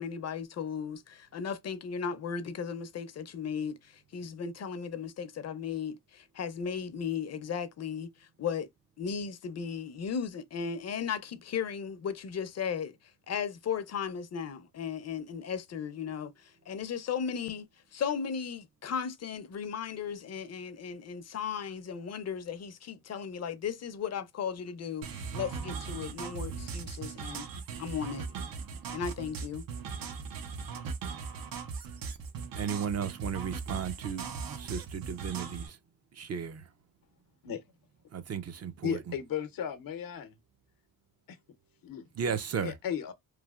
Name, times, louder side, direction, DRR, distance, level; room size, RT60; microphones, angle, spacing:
voice 1, 0.0-8.7 9.0-27.5 27.8-28.3 28.9-29.7, left 7 dB, 50° left, 0.6 m, -36 dB
sound 1, 25.0-35.7, right 5 dB, 85° right, 0.7 m, -39 dB
voice 2, 32.6-34.3 34.5-35.8 36.1-36.7 38.1-39.1 42.2-42.7, right 7 dB, 50° right, 0.5 m, -35 dB
voice 3, 38.8-40.4 41.3-41.4 41.8-42.1 42.6-43.1, left 8 dB, 80° left, 0.7 m, -35 dB
3.2 x 2.4 x 2.3 m
cardioid pair, 90°, 34 cm